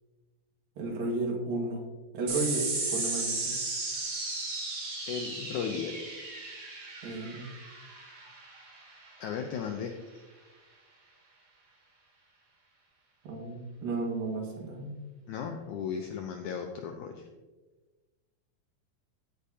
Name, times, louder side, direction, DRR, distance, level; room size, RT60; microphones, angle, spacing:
voice 1, 0.8-1.9 2.1-3.6 7.0-7.5 13.3-14.9, right 2 dB, 70° right, 0 dB, 3.4 m, -33 dB
sound 1, 2.3-9.1, right 3 dB, 50° right, 3.6 m, -35 dB
voice 2, 5.1-6.0 9.2-10.0 15.3-17.3, left 7 dB, 85° left, 4 dB, 1.7 m, -35 dB
15.0 x 8.4 x 2.8 m, 1.3 s
omnidirectional pair, 4.3 m